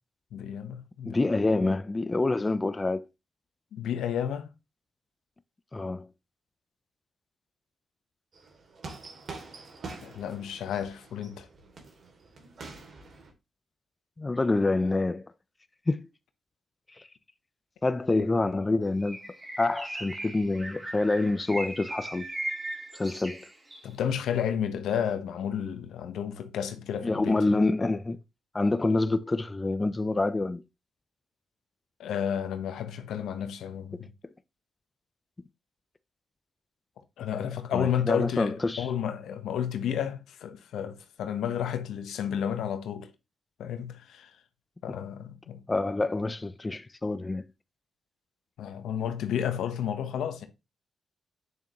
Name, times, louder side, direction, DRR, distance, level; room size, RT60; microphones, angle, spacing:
voice 1, 0.3-1.2 3.7-4.5 10.0-11.5 23.8-27.6 32.0-34.1 37.2-43.1 43.6-44.4 44.8-45.6 48.6-50.5, left 9 dB, 80° left, 1.1 m, -32 dB
voice 2, 1.1-3.0 5.7-6.1 14.2-15.3 15.9-16.1 16.9-17.1 17.8-19.2 19.6-22.3 22.9-23.5 27.0-28.2 28.5-30.6 33.9-34.1 37.7-38.9 45.7-47.4, left 2 dB, 25° left, 0.6 m, -27 dB
sound 1, 8.3-13.3, right 3 dB, 60° right, 2.7 m, -45 dB
Bird, 19.0-23.9, right 1 dB, 30° right, 3.5 m, -38 dB
8.7 x 6.7 x 3.1 m
supercardioid pair, 50°, 0 cm